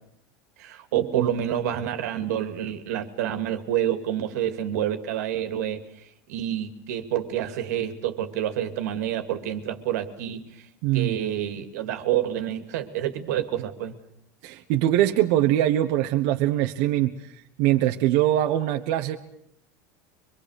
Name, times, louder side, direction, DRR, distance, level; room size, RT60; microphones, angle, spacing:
voice 1, 0.6-5.8 6.3-10.6 10.9-14.0, right 11 dB, 90° right, 8 dB, 2.4 m, -28 dB
voice 2, 10.8-11.1 14.4-17.3 17.6-19.2, right 13 dB, 60° right, 4 dB, 1.3 m, -22 dB
24.5 x 23.0 x 6.6 m, 0.73 s
supercardioid pair, 150°, 9 cm